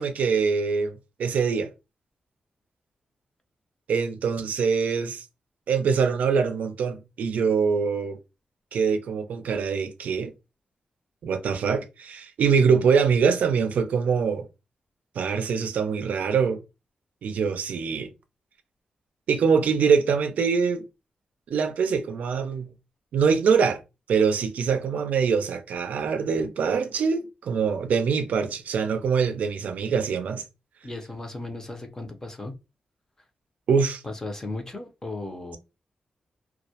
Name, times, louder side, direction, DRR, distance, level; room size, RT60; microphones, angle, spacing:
voice 1, 0.0-1.7 3.9-5.2 5.7-8.2 8.7-10.3 11.2-14.5 15.2-16.6 17.2-18.1 19.3-20.8 21.5-22.7 23.1-23.8 24.1-30.4 33.7-34.0, right 6 dB, 85° right, 0.4 m, -24 dB
voice 2, 30.8-32.5 34.0-35.6, left 2 dB, 20° left, 0.6 m, -36 dB
2.2 x 2.0 x 2.7 m
wide cardioid pair, 100°, 3 cm